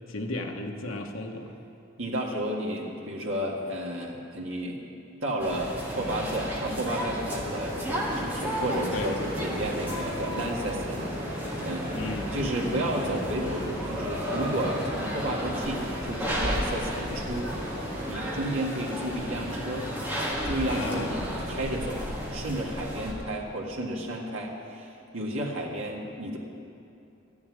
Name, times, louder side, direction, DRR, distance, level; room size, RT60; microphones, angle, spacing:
voice 1, 0.1-1.5 8.9-9.2 11.9-12.3 20.7-21.1, left 2 dB, 90° left, 3 dB, 1.2 m, -34 dB
voice 2, 2.0-4.8 5.2-11.0 11.6-11.9 12.3-17.5 18.1-19.9 20.4-22.0 22.3-26.4, right 1 dB, 75° right, -2 dB, 1.8 m, -32 dB
sound 1, 5.4-23.1, equal, 10° right, 1.8 m, -33 dB
sound 2, 7.4-18.2, equal, 40° right, 3.5 m, -38 dB
13.0 x 7.1 x 9.7 m, 2.7 s
head